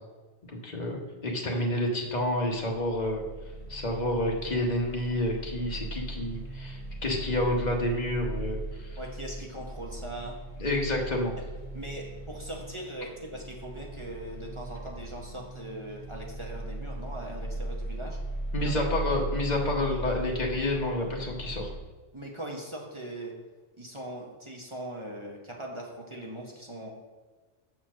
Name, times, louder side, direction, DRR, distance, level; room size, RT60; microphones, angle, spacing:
voice 1, 0.5-3.2 3.7-9.0 10.6-11.3 18.5-21.7, left 1 dB, 40° left, 0 dB, 1.2 m, -29 dB
sound 1, 2.9-21.8, right 1 dB, 65° left, 1.5 m, -38 dB
voice 2, 9.0-10.4 11.4-11.5 11.7-18.2 18.6-18.7 22.1-23.3 23.8-26.9, right 1 dB, 30° right, -1 dB, 0.9 m, -40 dB
6.4 x 4.5 x 6.2 m, 1.3 s
omnidirectional pair, 1.2 m